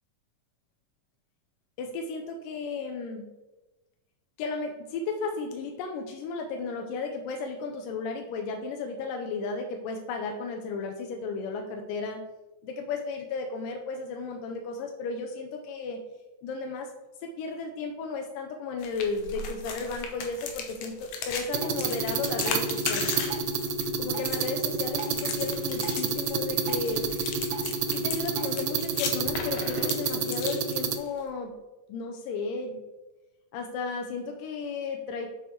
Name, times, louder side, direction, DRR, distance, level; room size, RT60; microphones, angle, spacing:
voice 1, 1.8-3.3 4.4-12.3 12.6-16.0 16.4-16.9 17.2-23.1 24.0-27.1 27.9-31.6 31.9-32.8 33.5-35.3, left 4 dB, 85° left, 3 dB, 2.3 m, -34 dB
sound 1, 18.8-31.2, left 5 dB, 70° left, 1.6 m, -37 dB
Drip, 21.5-28.5, right 5 dB, 70° right, 0.7 m, -46 dB
sound 2, 21.5-31.0, right 5 dB, 85° right, 1.5 m, -29 dB
6.8 x 6.0 x 4.3 m, 1.1 s
omnidirectional pair, 3.8 m